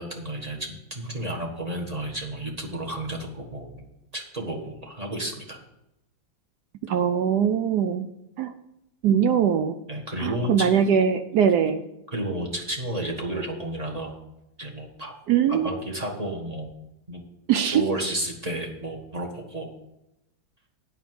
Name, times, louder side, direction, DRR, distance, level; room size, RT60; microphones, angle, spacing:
voice 1, 0.0-3.8 4.1-5.6 9.9-10.7 12.1-14.2 14.6-15.1 15.5-16.7 17.1-17.2 17.7-19.7, right 1 dB, 20° right, 0 dB, 1.3 m, -32 dB
voice 2, 6.9-8.1 8.4-8.5 9.0-9.8 10.2-11.8 15.3-15.8 17.5-17.8, right 8 dB, 80° right, 10 dB, 0.9 m, -21 dB
8.8 x 5.6 x 7.6 m, 0.87 s
omnidirectional pair, 2.3 m